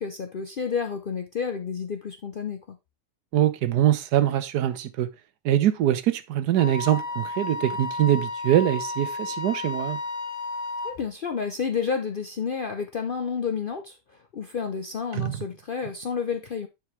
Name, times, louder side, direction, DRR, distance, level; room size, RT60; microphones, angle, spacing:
voice 1, 0.0-2.8 10.8-14.0 14.3-16.7, left 6 dB, 60° left, 0.5 m, -30 dB
voice 2, 3.3-5.1 5.4-10.0 15.1-15.4, right 11 dB, 85° right, 1.3 m, -23 dB
Wind instrument woodwind instrument, 6.6-11.0, left 3 dB, 30° left, 1.0 m, -32 dB
9.4 x 4.7 x 3.1 m
omnidirectional pair, 1.7 m